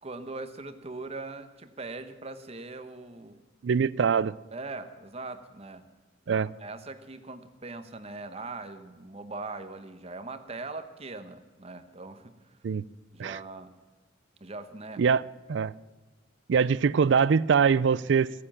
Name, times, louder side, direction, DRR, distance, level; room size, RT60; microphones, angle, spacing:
voice 1, 0.0-3.4 4.5-5.9 6.3-12.5 13.1-13.7 14.4-15.0 16.6-16.7, right 3 dB, 35° right, 9 dB, 1.0 m, -41 dB
voice 2, 3.6-4.3 6.3-6.5 12.6-12.8 13.2-13.4 15.0-15.2 15.5-15.7 16.5-18.3, right 6 dB, 70° right, 20 dB, 0.4 m, -23 dB
16.5 x 9.8 x 7.2 m, 1.3 s
head